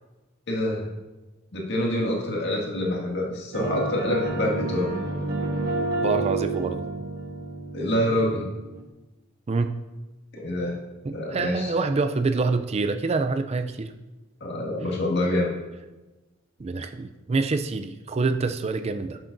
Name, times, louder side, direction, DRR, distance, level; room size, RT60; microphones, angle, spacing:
voice 1, 0.5-0.9 1.5-4.9 7.7-8.5 10.3-10.8 11.1-11.7 14.4-15.5, left 1 dB, 60° left, -2 dB, 2.0 m, -26 dB
sound 1, 3.5-8.9, right 2 dB, 50° right, 1.4 m, -30 dB
voice 2, 6.0-6.8 9.5-9.7 11.0-13.9 16.6-19.2, right 3 dB, 30° right, 8 dB, 0.4 m, -26 dB
11.5 x 7.5 x 2.6 m, 1.1 s
head